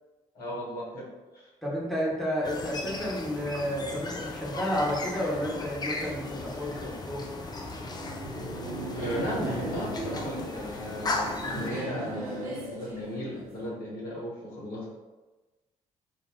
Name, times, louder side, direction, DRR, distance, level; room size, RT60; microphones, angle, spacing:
voice 1, 0.3-1.1 1.3-1.5 3.9-4.0 9.0-14.9, left 1 dB, 60° left, -5 dB, 1.1 m, -35 dB
voice 2, 1.6-7.3, equal, ahead, -6 dB, 1.2 m, -31 dB
sound 1, 2.4-11.7, left 3 dB, 25° left, 0.5 m, -36 dB
Laughter, 7.4-13.7, right 2 dB, 80° right, 0.5 m, -38 dB
2.6 x 2.5 x 3.6 m, 1.2 s
figure-of-eight pair, 45°, 18 cm